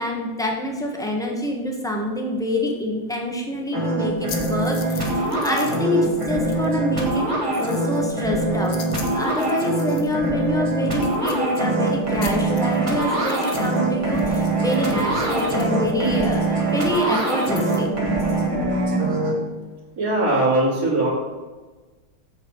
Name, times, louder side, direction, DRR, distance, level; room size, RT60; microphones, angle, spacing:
voice 1, 0.0-7.2 7.6-8.8 9.1-17.9, left 1 dB, ahead, 0 dB, 1.1 m, -26 dB
sound 1, 3.7-19.3, right 2 dB, 15° right, 1.5 m, -23 dB
sound 2, 4.3-5.9 6.1-6.8 7.0-10.3 10.6-10.7 10.9-11.9 12.2-13.8 14.1-17.8, left 7 dB, 70° left, 1.7 m, -40 dB
voice 2, 20.0-21.1, right 2 dB, 45° right, -8 dB, 2.3 m, -20 dB
7.5 x 7.3 x 4.8 m, 1.3 s
omnidirectional pair, 2.3 m